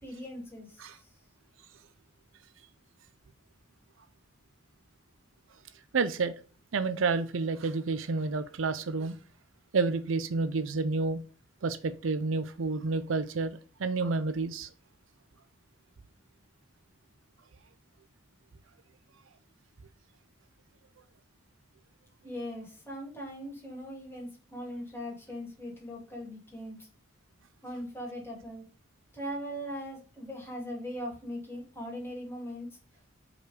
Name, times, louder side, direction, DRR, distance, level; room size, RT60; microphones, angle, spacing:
voice 1, 0.0-0.7 22.2-26.8 27.6-28.6 29.1-32.7, equal, 10° left, 2.6 m, -40 dB
voice 2, 5.9-6.4 6.7-9.2 9.7-11.2 11.6-14.7, right 4 dB, 75° right, 0.5 m, -29 dB
5.3 x 4.2 x 5.0 m
head